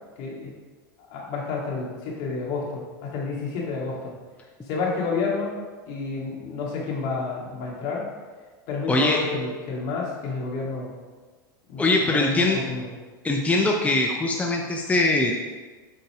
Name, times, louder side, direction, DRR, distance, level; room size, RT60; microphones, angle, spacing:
voice 1, 0.2-0.5 1.1-4.1 4.7-5.6 5.9-8.1 8.7-10.9 11.7-12.9, left 4 dB, 60° left, -3 dB, 2.3 m, -30 dB
voice 2, 8.9-9.2 11.8-12.6 13.2-15.3, left 2 dB, 10° left, 0 dB, 0.8 m, -22 dB
8.0 x 4.0 x 4.9 m, 1.4 s
hypercardioid pair, 95°, 11 cm